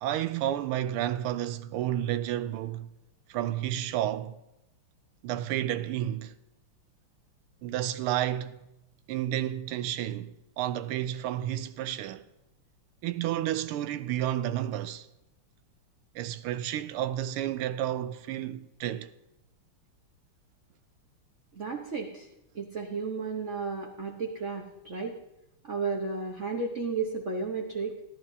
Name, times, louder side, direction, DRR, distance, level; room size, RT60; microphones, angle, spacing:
voice 1, 0.0-2.9 3.3-4.4 5.2-6.3 7.6-8.6 9.1-12.2 13.0-15.1 16.1-19.1, right 12 dB, 85° right, 1.5 m, -31 dB
voice 2, 21.5-22.3 22.5-25.2 25.7-27.9, right 4 dB, 45° right, 1.0 m, -33 dB
17.5 x 12.0 x 2.7 m
omnidirectional pair, 2.4 m